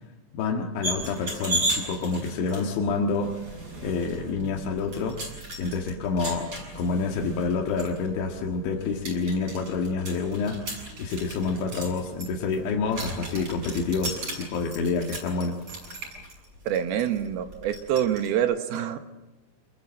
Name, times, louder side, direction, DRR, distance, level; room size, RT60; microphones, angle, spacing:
voice 1, 0.3-3.3 3.8-5.2 5.6-10.6 11.0-15.6, left 4 dB, 90° left, 1 dB, 4.1 m, -28 dB
sound 1, 0.8-18.3, right 1 dB, 35° right, 8.5 m, -36 dB
voice 2, 16.7-19.0, right 10 dB, 70° right, 8 dB, 2.9 m, -26 dB
28.5 x 21.0 x 7.7 m, 1.0 s
omnidirectional pair, 5.1 m